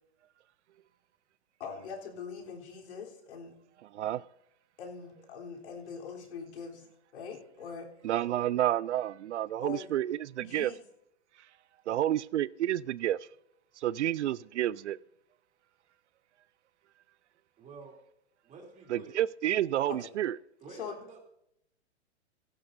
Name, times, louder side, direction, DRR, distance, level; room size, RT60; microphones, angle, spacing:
voice 1, 1.6-3.5 4.8-6.9 7.1-7.9 9.6-9.9 10.4-10.8 19.9-20.1 20.7-21.0, left 6 dB, 70° left, 3.6 m, -42 dB
voice 2, 8.0-10.7 11.9-13.2 13.8-15.0 18.9-20.4, right 12 dB, 80° right, 0.5 m, -30 dB
voice 3, 17.6-18.0 18.4-19.2 20.6-21.2, right 4 dB, 20° right, 3.0 m, -49 dB
16.5 x 14.5 x 2.6 m
hypercardioid pair, 125°, 35 cm